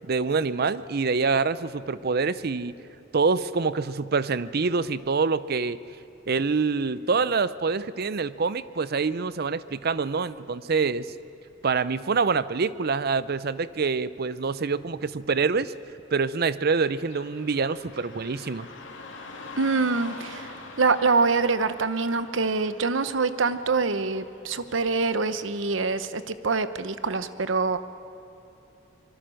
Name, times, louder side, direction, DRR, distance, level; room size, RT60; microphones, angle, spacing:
voice 1, 0.1-2.7 3.1-5.8 6.3-11.1 11.6-15.7 16.1-18.7, right 4 dB, 55° right, 16 dB, 0.6 m, -26 dB
Car passing by / Traffic noise roadway noise, 16.6-25.7, left 3 dB, 80° left, 2.8 m, -45 dB
voice 2, 19.6-27.8, right 4 dB, 85° right, 12 dB, 1.0 m, -25 dB
25.0 x 22.5 x 6.4 m, 2.9 s
head